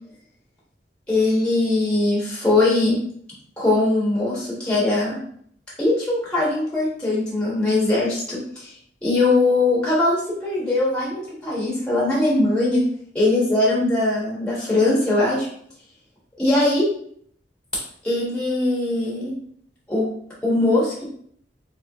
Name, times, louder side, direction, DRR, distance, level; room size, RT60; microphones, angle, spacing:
voice 1, 1.1-3.0 3.6-5.2 5.8-8.7 9.0-12.8 13.1-15.5 16.4-16.9 18.0-19.3 19.9-20.1 20.4-21.1, left 2 dB, 5° left, -6 dB, 1.2 m, -21 dB
3.4 x 3.2 x 3.4 m, 0.63 s
head